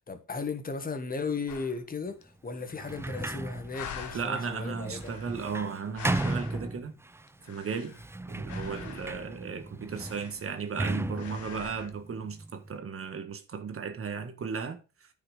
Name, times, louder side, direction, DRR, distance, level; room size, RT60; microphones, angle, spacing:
voice 1, 0.1-5.1, left 4 dB, 30° left, 1.7 m, -36 dB
sound 1, 1.5-1.8 2.2-2.3 2.5-3.3 3.7-4.4 4.9-6.8 7.3-8.1 8.5-9.3 9.9-10.8 11.1-11.9, left 8 dB, 70° left, 1.4 m, -45 dB
Sliding door, 2.7-7.3 7.9-12.7, right 2 dB, 10° right, 0.5 m, -36 dB
voice 2, 4.1-7.0 7.4-8.0 8.3-15.1, right 6 dB, 45° right, 1.5 m, -35 dB
9.9 x 6.0 x 5.0 m
cardioid pair, 90°, 30 cm